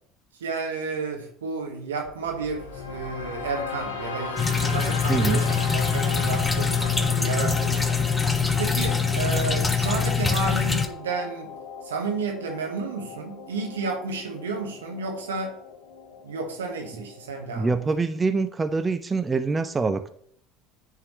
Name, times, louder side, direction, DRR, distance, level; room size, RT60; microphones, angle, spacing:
voice 1, 0.4-8.0 8.6-11.5 11.8-15.5 16.2-17.7, right 4 dB, 85° right, 2 dB, 1.2 m, -31 dB
sound 1, 2.0-18.0, left 5 dB, 85° left, 1.0 m, -37 dB
sound 2, 4.4-10.9, left 5 dB, 15° left, 0.9 m, -24 dB
voice 2, 5.1-5.5 17.5-20.1, right 4 dB, 25° right, 10 dB, 0.5 m, -25 dB
9.5 x 3.7 x 3.1 m, 0.63 s
hypercardioid pair, 75°, 0 cm